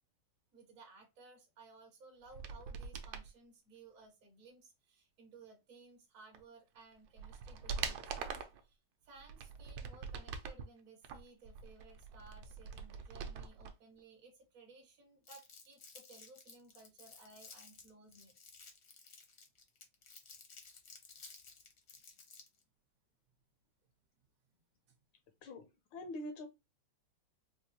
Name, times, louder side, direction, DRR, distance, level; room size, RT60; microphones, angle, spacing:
voice 1, 0.5-18.4 24.9-25.0, right 3 dB, 55° right, 0.9 m, -59 dB
sound 1, 2.3-3.3 6.3-6.4 6.9-8.6 9.2-10.6 11.0-13.7 14.0-14.1, right 6 dB, 75° right, 1.2 m, -43 dB
Crumpling crinkling, 15.3-22.6, left 4 dB, 60° left, 0.7 m, -56 dB
voice 2, 25.4-26.5, left 1 dB, 75° left, 1.3 m, -45 dB
4.6 x 2.3 x 2.8 m
omnidirectional pair, 2.3 m